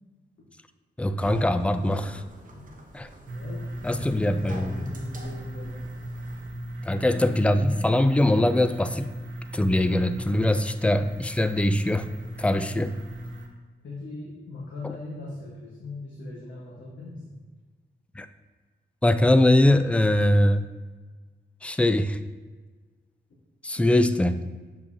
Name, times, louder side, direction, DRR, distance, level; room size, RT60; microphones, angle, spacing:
voice 1, 1.0-2.2 2.9-3.1 3.8-4.8 6.9-9.1 9.5-12.1 12.4-12.9 18.2-18.3 19.0-20.6 21.6-22.2 23.6-24.4, left 1 dB, 5° left, 10 dB, 0.3 m, -22 dB
sound 1, 1.2-6.5, right 2 dB, 45° right, 0.9 m, -45 dB
voice 2, 3.2-5.9 6.9-7.6 13.8-17.4 23.8-23.9, left 2 dB, 80° left, -5 dB, 1.3 m, -40 dB
sound 2, 3.3-13.5, right 1 dB, 85° right, 0.8 m, -37 dB
7.0 x 5.2 x 2.7 m, 1.4 s
cardioid pair, 85°, 19 cm